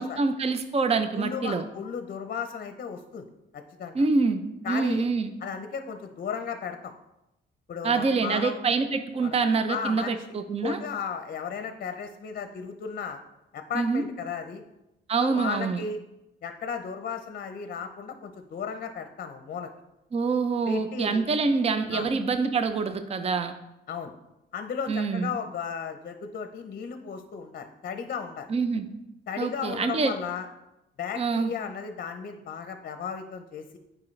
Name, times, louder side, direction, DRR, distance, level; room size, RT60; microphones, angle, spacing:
voice 1, 0.0-1.6 3.9-5.3 7.8-10.8 13.7-14.0 15.1-15.8 20.1-23.5 24.9-25.3 28.5-28.8 29.4-30.1 31.2-31.5, right 4 dB, 30° right, 9 dB, 0.6 m, -26 dB
voice 2, 1.1-3.3 3.5-4.1 4.6-5.1 5.4-6.9 7.7-8.6 9.2-9.4 9.7-13.2 13.5-14.6 15.2-16.0 16.4-19.7 20.7-21.2 21.9-22.1 23.9-24.1 24.5-28.5 29.3-30.5 31.0-33.8, left 6 dB, 50° left, 7 dB, 0.6 m, -35 dB
8.3 x 4.9 x 3.2 m, 0.91 s
cardioid pair, 90°, 20 cm